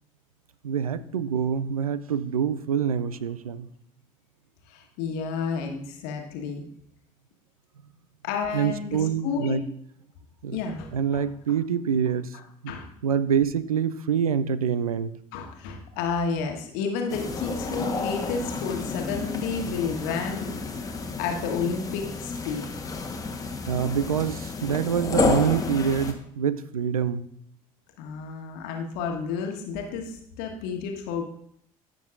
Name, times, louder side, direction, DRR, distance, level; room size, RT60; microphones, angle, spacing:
voice 1, 0.6-3.7 8.5-9.7 10.4-10.6 10.9-12.3 12.6-12.7 13.0-15.1 23.7-27.2, right 7 dB, 80° right, 15 dB, 0.4 m, -26 dB
voice 2, 4.7-6.6 8.2-9.6 10.5-11.2 12.7-12.9 15.3-20.5 21.2-22.6 28.0-31.2, left 5 dB, 60° left, 3 dB, 1.4 m, -31 dB
sound 1, 17.1-26.1, left 3 dB, 20° left, 1.2 m, -31 dB
15.0 x 6.1 x 2.5 m, 0.68 s
figure-of-eight pair, 60°, 18 cm